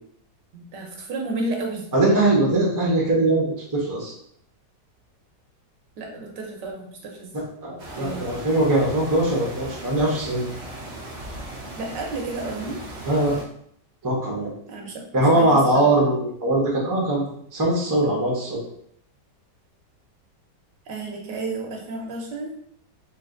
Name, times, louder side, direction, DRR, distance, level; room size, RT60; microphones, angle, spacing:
voice 1, 0.5-1.9 6.0-7.3 8.0-8.3 11.8-12.8 14.7-15.9 20.9-22.5, right 2 dB, 80° right, 0 dB, 1.5 m, -32 dB
voice 2, 1.9-3.4 3.7-4.1 7.3-10.4 13.1-13.4 14.0-14.5 15.1-17.2 17.5-18.6, right 1 dB, 15° right, -3 dB, 0.7 m, -21 dB
sound 1, 7.8-13.4, right 1 dB, 50° right, 0.8 m, -37 dB
3.3 x 2.9 x 3.8 m, 0.66 s
omnidirectional pair, 1.9 m